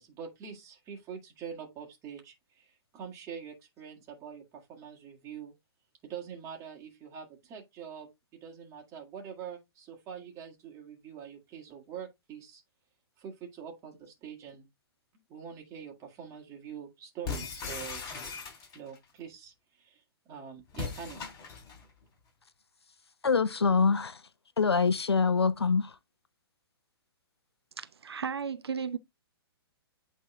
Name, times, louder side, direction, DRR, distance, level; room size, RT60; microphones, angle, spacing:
voice 1, 0.0-5.5 6.0-12.6 13.2-14.7 15.3-18.0 18.7-21.2, right 7 dB, 25° right, 2.0 m, -45 dB
sound 1, 17.2-19.0 20.7-21.8, left 5 dB, 25° left, 3.4 m, -38 dB
voice 2, 23.2-24.2 24.6-25.9, left 5 dB, 90° left, 0.5 m, -25 dB
voice 3, 27.8-29.0, right 6 dB, 80° right, 0.7 m, -34 dB
8.6 x 3.7 x 3.4 m
figure-of-eight pair, 125°, 13 cm